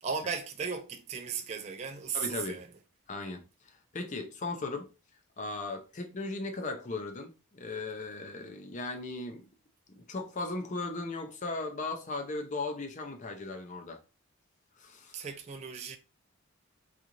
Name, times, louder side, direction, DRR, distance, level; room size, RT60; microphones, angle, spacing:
voice 1, 0.0-2.7 15.1-16.0, right 6 dB, 30° right, 0.3 m, -36 dB
voice 2, 2.1-2.6 3.1-4.9 5.4-9.5 9.9-14.0 14.8-15.3, left 3 dB, 35° left, 0.5 m, -37 dB
3.7 x 2.4 x 2.8 m
head